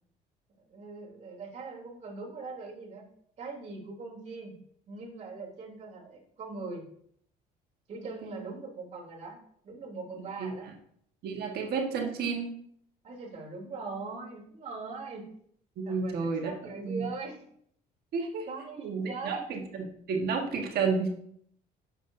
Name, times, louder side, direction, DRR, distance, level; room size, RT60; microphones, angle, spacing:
voice 1, 0.6-3.0 3.4-4.5 4.9-6.8 7.9-9.4 9.6-10.7 13.0-15.3 15.8-17.4 18.2-19.4, right 4 dB, 45° right, -3 dB, 3.1 m, -41 dB
voice 2, 10.2-10.5 11.2-12.5 15.8-16.5 16.8-17.1 18.1-18.5 18.8-21.1, right 5 dB, 70° right, 1 dB, 1.5 m, -31 dB
9.8 x 7.2 x 2.7 m, 0.68 s
cardioid pair, 110°, 17 cm